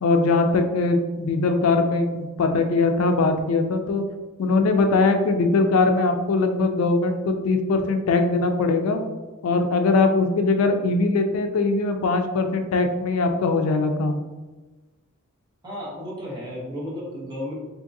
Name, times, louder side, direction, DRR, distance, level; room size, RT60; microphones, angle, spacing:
voice 1, 0.0-4.0 4.4-9.0 9.4-14.2, left 3 dB, 80° left, 6 dB, 0.4 m, -21 dB
voice 2, 15.6-17.5, equal, 20° right, -6 dB, 1.0 m, -33 dB
3.6 x 2.8 x 2.6 m, 1.2 s
head